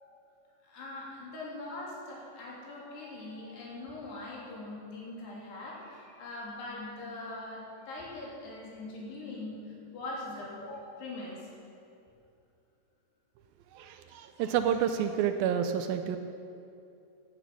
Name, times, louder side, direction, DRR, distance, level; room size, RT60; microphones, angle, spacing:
voice 1, 0.7-9.6 9.9-11.4, left 2 dB, 90° left, -4 dB, 5.3 m, -42 dB
voice 2, 13.7-16.2, right 8 dB, 80° right, 8 dB, 2.2 m, -29 dB
16.5 x 11.0 x 6.2 m, 2.7 s
omnidirectional pair, 4.6 m